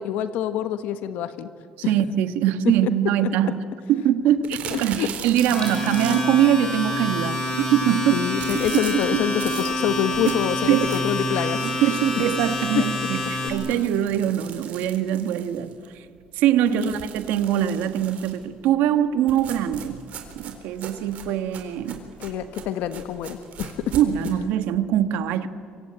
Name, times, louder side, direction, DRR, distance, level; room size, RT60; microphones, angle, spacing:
voice 1, 0.0-1.5 1.8-1.9 2.6-2.9 3.2-3.3 4.7-5.1 8.1-11.7 12.7-12.8 16.7-16.9 22.2-23.9, left 10 dB, 80° left, 10 dB, 1.2 m, -26 dB
voice 2, 1.9-8.3 8.7-9.2 10.2-10.4 10.7-11.0 11.6-13.2 13.5-16.0 16.3-20.0 20.3-22.0 23.9-25.5, right 10 dB, 85° right, 10 dB, 1.5 m, -23 dB
sound 1, 4.4-6.5 8.4-11.3 11.8-11.9 12.2-12.3 12.6-12.7 13.4-15.9 16.7-18.5 19.3-24.3, right 8 dB, 55° right, 3.9 m, -39 dB
Domestic sounds home sounds, 5.4-13.5, left 1 dB, 30° left, 6.4 m, -27 dB
26.0 x 24.5 x 8.9 m, 2.2 s
cardioid pair, 145°, 3 cm